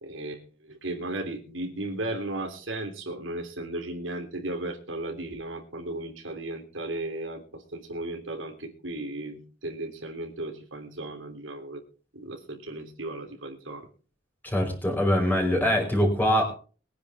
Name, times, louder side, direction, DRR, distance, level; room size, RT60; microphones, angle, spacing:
voice 1, 0.0-11.8 12.1-13.9, right 2 dB, 85° right, 3 dB, 3.2 m, -35 dB
voice 2, 14.4-16.5, equal, 10° left, 2 dB, 5.2 m, -23 dB
22.5 x 10.0 x 3.6 m, 0.39 s
head